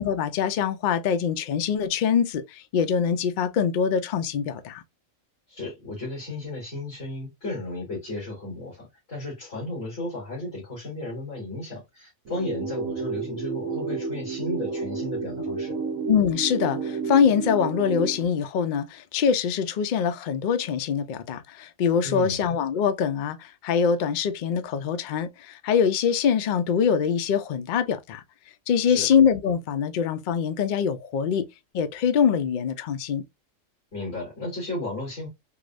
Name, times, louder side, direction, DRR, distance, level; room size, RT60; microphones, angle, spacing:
voice 1, 0.0-4.8 16.1-28.2 28.7-31.5 31.7-33.2, left 7 dB, 70° left, 0.4 m, -24 dB
voice 2, 5.5-15.8 22.0-22.4 28.8-29.1 33.9-35.3, left 2 dB, 50° left, 2.5 m, -34 dB
sound 1, 12.3-18.3, right 4 dB, 85° right, 1.3 m, -31 dB
4.8 x 2.0 x 2.4 m
omnidirectional pair, 1.4 m